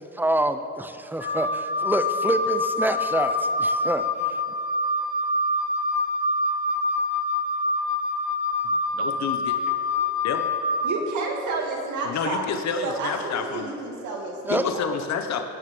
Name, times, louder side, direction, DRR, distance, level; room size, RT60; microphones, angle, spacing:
voice 1, 0.0-4.4 14.5-14.7, right 1 dB, 5° right, 9 dB, 0.8 m, -26 dB
Wind instrument woodwind instrument, 1.2-10.8, left 2 dB, 40° left, 3.3 m, -25 dB
voice 2, 8.9-9.6 10.2-10.4 12.0-13.7 14.5-15.4, left 6 dB, 65° left, 6 dB, 1.1 m, -29 dB
voice 3, 10.8-12.5 12.8-14.9, right 3 dB, 75° right, 0 dB, 2.6 m, -30 dB
18.0 x 6.7 x 7.0 m, 2.7 s
cardioid pair, 90°, 30 cm